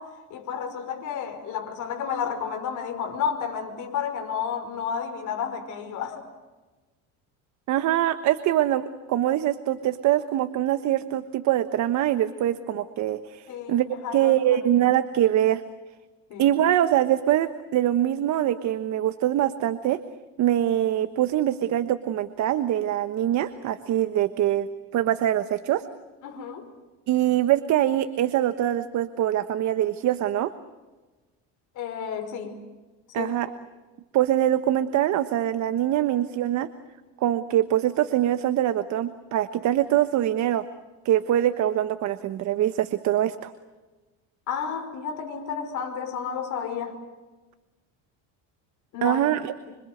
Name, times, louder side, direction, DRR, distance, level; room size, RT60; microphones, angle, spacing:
voice 1, 0.0-6.2 13.5-14.6 16.3-16.5 26.2-26.6 31.8-32.6 33.2-33.3 44.5-47.0 48.9-49.2 49.7-49.8, left 7 dB, 55° left, 5.3 m, -31 dB
voice 2, 7.7-13.8 14.1-15.6 16.4-20.0 20.4-24.7 24.9-25.8 27.1-30.5 33.1-33.5 34.1-36.7 37.2-40.6 41.0-43.5 49.0-49.5, right 12 dB, 55° right, 1.2 m, -23 dB
26.5 x 26.0 x 7.9 m
cardioid pair, 135°, 35 cm